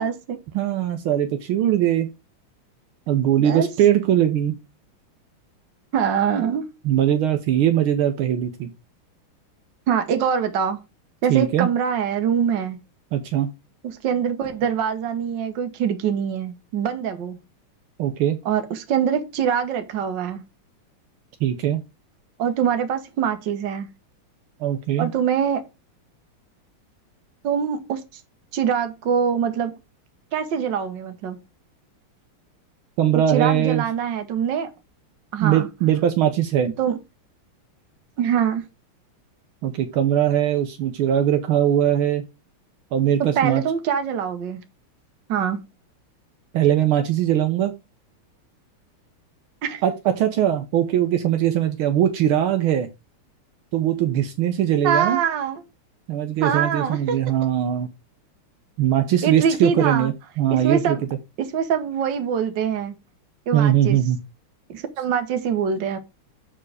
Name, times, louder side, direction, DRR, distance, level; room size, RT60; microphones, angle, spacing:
voice 1, 0.0-0.4 3.4-3.7 5.9-6.7 9.9-10.8 11.2-12.8 13.8-17.4 18.4-20.4 22.4-23.9 25.0-25.6 27.4-28.0 28.5-29.8 30.3-31.4 33.1-34.7 35.3-35.7 36.8-37.0 38.2-38.6 43.2-44.6 45.3-45.6 49.6-49.8 54.8-55.6 56.4-57.2 59.2-60.1 60.5-61.0 61.4-62.9 63.5-64.0 64.7-66.0, right 7 dB, 60° right, 1.7 m, -24 dB
voice 2, 0.5-2.1 3.1-4.6 6.8-8.7 11.3-11.7 13.1-13.5 18.0-18.4 21.4-21.8 24.6-25.1 33.0-33.8 35.4-36.7 39.6-42.2 42.9-43.6 46.5-47.7 49.8-52.9 53.7-55.2 56.1-57.9 58.8-61.0 63.5-64.2, right 11 dB, 75° right, 1.6 m, -20 dB
7.3 x 4.6 x 4.8 m
omnidirectional pair, 2.4 m